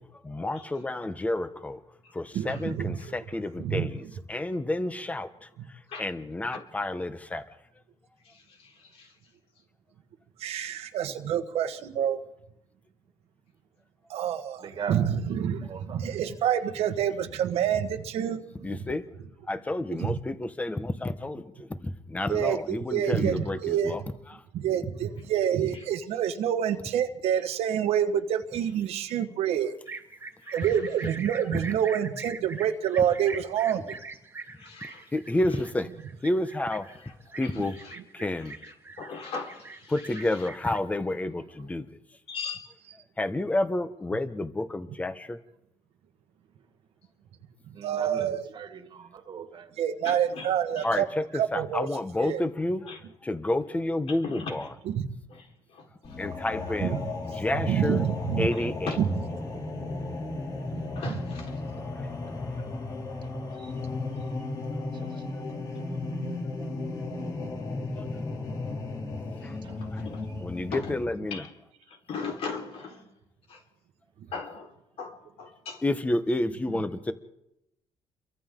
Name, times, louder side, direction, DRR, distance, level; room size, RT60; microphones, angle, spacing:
voice 1, 0.0-1.8 2.1-7.4 15.6-15.7 18.6-19.0 19.5-24.0 24.3-24.4 31.5-31.6 35.1-35.9 36.2-37.8 38.1-38.6 39.9-42.0 43.2-45.4 50.8-52.9 53.2-54.7 56.2-57.0 57.2-58.0 58.4-58.9 61.9-62.1 64.7-64.8 65.1-65.4 66.6-66.7 67.9-68.1 69.4-69.6 69.9-70.1 70.4-71.4 75.8-77.1, left 1 dB, 15° left, 1.2 m, -30 dB
voice 2, 2.3-3.0 3.6-3.9 10.4-12.2 14.1-18.7 20.0-20.2 22.3-24.0 24.5-29.7 30.5-34.0 47.8-48.5 49.8-51.1 51.4-51.9 52.2-52.4 55.0-55.1 56.8-57.0 57.7-58.5 61.0-61.1, right 9 dB, 80° right, 1.5 m, -27 dB
voice 3, 8.2-9.2 25.7-25.8 28.9-29.2 29.9-30.0 30.4-31.1 34.6-35.1 37.0-37.1 37.4-38.0 38.3-40.5 42.3-42.7 50.0-51.0 52.9-53.0 54.1-54.7 55.3-56.3 58.5-59.0 60.9-61.6 69.4-70.3 70.7-70.9 71.3-71.5 71.9-73.2 73.5-73.6 74.3-75.8, left 5 dB, 70° left, 4.4 m, -40 dB
voice 4, 14.6-15.1 15.5-16.0 47.7-49.7 56.7-57.0 63.5-63.7 64.9-65.2 69.6-69.9, right 6 dB, 50° right, 1.9 m, -40 dB
sound 1, 29.9-40.8, right 4 dB, 20° right, 2.2 m, -43 dB
sound 2, 56.0-71.0, left 2 dB, 35° left, 3.1 m, -35 dB
29.5 x 23.5 x 3.8 m
cardioid pair, 120°, 10 cm